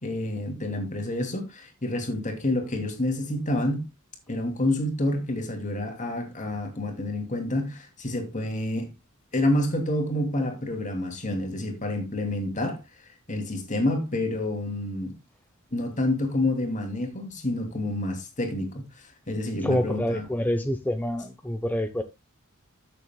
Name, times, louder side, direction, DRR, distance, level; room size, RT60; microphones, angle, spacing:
voice 1, 0.0-3.9 4.3-8.9 9.3-12.8 13.3-15.1 15.7-18.8 19.3-20.2, left 1 dB, 35° left, 2.7 m, -28 dB
voice 2, 19.6-22.0, left 1 dB, 10° left, 0.8 m, -27 dB
14.0 x 6.9 x 2.2 m
head